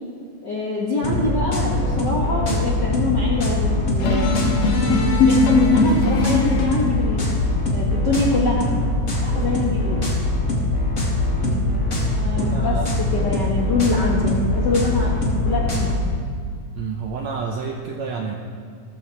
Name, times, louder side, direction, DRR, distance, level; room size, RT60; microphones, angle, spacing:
voice 1, 0.4-4.6 4.9-8.7 9.2-10.0 12.1-12.7 13.1-15.9, left 3 dB, 60° left, -3 dB, 1.1 m, -24 dB
sound 1, 1.0-16.0, left 2 dB, 30° left, 1.6 m, -22 dB
sound 2, 4.0-6.9, left 3 dB, 80° left, 3.1 m, -19 dB
voice 2, 11.4-12.0 12.2-13.0 16.7-18.4, right 5 dB, 75° right, 2 dB, 1.6 m, -30 dB
14.5 x 14.0 x 4.6 m, 2.2 s
omnidirectional pair, 4.1 m